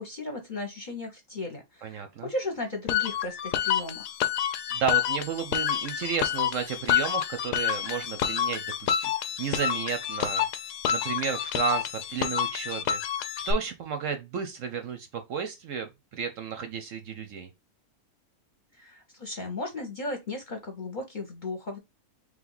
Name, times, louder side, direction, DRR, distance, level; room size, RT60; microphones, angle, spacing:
voice 1, 0.0-4.1 18.7-21.8, left 2 dB, 35° left, 0.9 m, -36 dB
voice 2, 1.8-2.3 4.7-10.4 10.9-13.0 13.4-17.5, right 7 dB, 65° right, 0.9 m, -32 dB
sound 1, 2.9-13.5, left 10 dB, 90° left, 1.2 m, -28 dB
3.4 x 3.2 x 3.8 m
omnidirectional pair, 1.7 m